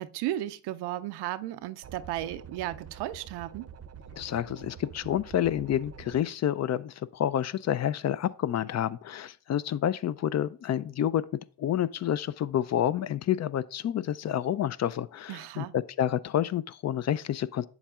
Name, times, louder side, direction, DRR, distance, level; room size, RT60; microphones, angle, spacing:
voice 1, 0.0-3.7 15.3-15.7, right 14 dB, 80° right, 0.5 m, -34 dB
sound 1, 1.8-6.2, right 7 dB, 40° right, 0.6 m, -47 dB
voice 2, 4.2-11.2 11.6-17.7, left 10 dB, 45° left, 0.4 m, -29 dB
8.0 x 7.2 x 2.4 m
supercardioid pair, 70°, 39 cm